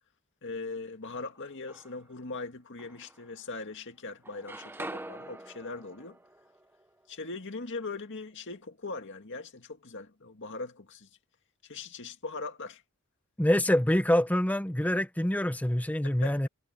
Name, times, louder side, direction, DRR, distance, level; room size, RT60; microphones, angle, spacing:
voice 1, 0.4-6.2 7.1-11.1 11.6-12.8 16.0-16.5, left 3 dB, 60° left, 2.1 m, -40 dB
sound 1, 1.3-2.2 2.8-3.8 4.1-8.0, right 1 dB, 10° right, 1.1 m, -46 dB
voice 2, 13.4-16.5, left 1 dB, 5° left, 0.9 m, -26 dB
head